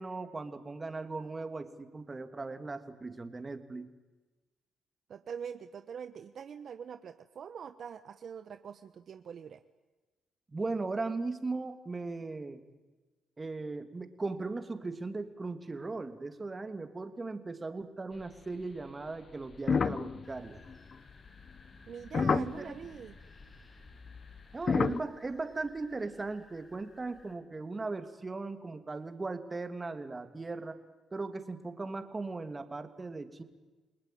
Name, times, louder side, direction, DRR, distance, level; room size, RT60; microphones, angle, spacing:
voice 1, 0.0-3.9 10.5-12.6 13.4-20.6 22.2-22.8 24.5-30.8 31.1-33.4, right 3 dB, 25° right, 8 dB, 2.8 m, -38 dB
voice 2, 5.1-9.6 21.9-23.2, right 7 dB, 55° right, 10 dB, 1.1 m, -44 dB
sound 1, 19.5-22.9 23.9-25.0, left 5 dB, 45° left, 0.9 m, -30 dB
sound 2, 20.2-27.3, left 2 dB, 25° left, 7.0 m, -59 dB
30.0 x 19.5 x 9.3 m, 1.2 s
cardioid pair, 90°, 0 cm